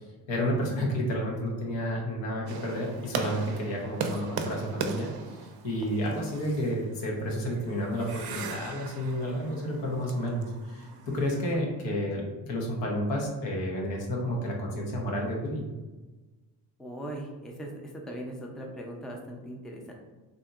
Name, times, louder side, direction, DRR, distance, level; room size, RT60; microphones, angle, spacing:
voice 1, 0.3-15.7, equal, 80° left, -1 dB, 0.9 m, -31 dB
sound 1, 2.5-11.5, right 5 dB, 60° right, 0.5 m, -39 dB
voice 2, 16.8-19.9, right 1 dB, ahead, 0 dB, 0.5 m, -39 dB
2.7 x 2.6 x 2.4 m, 1.2 s
supercardioid pair, 60°, 43 cm